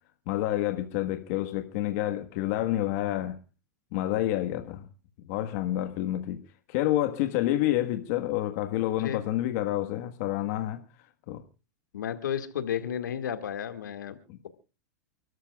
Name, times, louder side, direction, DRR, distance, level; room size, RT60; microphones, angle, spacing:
voice 1, 0.3-3.4 3.9-4.8 5.3-6.4 6.7-10.8 11.3-11.4 14.3-14.4, left 14 dB, 55° left, 1.5 m, -28 dB
voice 2, 11.9-14.2, left 9 dB, 90° left, 2.0 m, -32 dB
29.5 x 13.0 x 2.4 m
hypercardioid pair, 125°, 10 cm